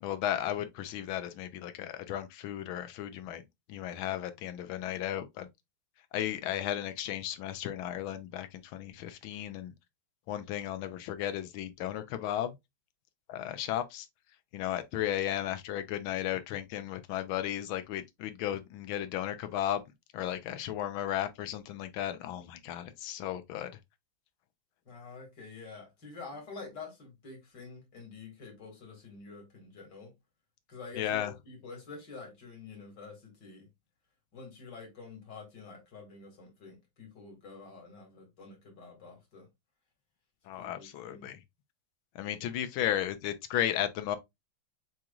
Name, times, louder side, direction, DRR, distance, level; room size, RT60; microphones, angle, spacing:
voice 1, 0.0-3.4 3.7-5.5 6.1-9.7 10.3-12.6 13.3-14.1 14.5-19.8 20.1-23.7 31.0-31.3 40.5-41.4 42.1-44.2, left 11 dB, 90° left, 1.5 m, -34 dB
voice 2, 24.9-30.1 30.7-33.7 34.3-39.5 40.6-41.3, left 4 dB, 55° left, 2.7 m, -48 dB
7.4 x 3.0 x 2.4 m
omnidirectional pair, 2.2 m